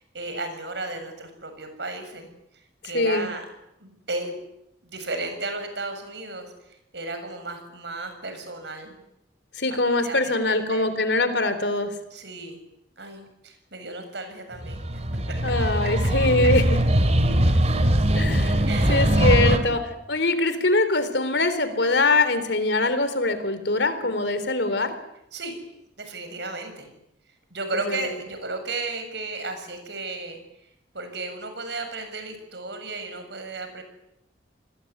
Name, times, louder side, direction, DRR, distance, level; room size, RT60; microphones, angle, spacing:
voice 1, 0.0-3.5 3.8-4.4 4.8-9.0 9.7-10.9 12.1-12.6 13.0-15.4 18.7-19.9 24.0-24.1 25.3-25.5 26.0-26.9 27.5-30.4 30.9-33.8, right 2 dB, 70° right, 7 dB, 7.3 m, -34 dB
voice 2, 2.9-3.3 9.6-11.9 15.4-16.6 18.2-18.6 18.9-19.8 20.1-24.9 27.9-28.0, left 2 dB, 65° left, 12 dB, 3.6 m, -23 dB
sound 1, 14.6-19.6, right 1 dB, 35° right, 2.5 m, -21 dB
29.0 x 21.0 x 9.6 m, 0.82 s
head